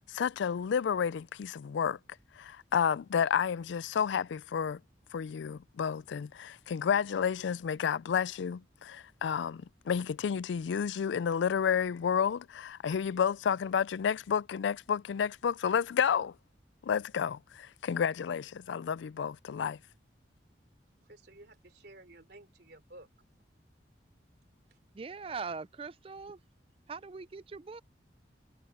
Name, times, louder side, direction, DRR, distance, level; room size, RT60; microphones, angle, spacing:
voice 1, 0.1-2.0 2.4-4.8 5.1-16.3 16.8-19.8, left 7 dB, 85° left, 0.4 m, -31 dB
voice 2, 21.0-23.1 24.7-24.8, right 2 dB, 60° right, 3.6 m, -54 dB
voice 3, 24.9-26.4 26.9-27.8, right 4 dB, 30° right, 0.4 m, -41 dB
head